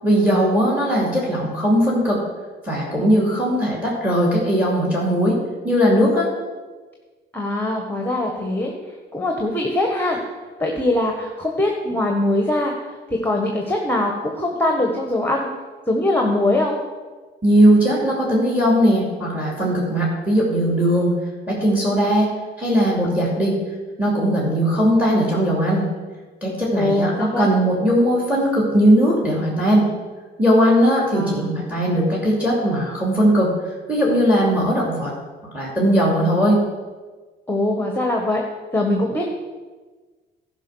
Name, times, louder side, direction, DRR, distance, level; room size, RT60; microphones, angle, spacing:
voice 1, 0.0-2.2 2.6-5.4 5.6-6.3 17.4-21.1 21.5-22.3 22.6-23.6 24.0-25.9 26.4-29.9 30.4-33.5 33.9-35.1 35.5-36.6, equal, 5° right, -3 dB, 2.6 m, -18 dB
voice 2, 7.3-8.7 9.1-10.2 10.6-12.7 13.1-15.5 15.9-16.8 26.7-27.5 31.1-31.5 37.5-38.4 38.7-39.3, left 1 dB, 10° left, 1 dB, 1.4 m, -22 dB
11.5 x 5.4 x 6.3 m, 1.3 s
cardioid pair, 90°, 20 cm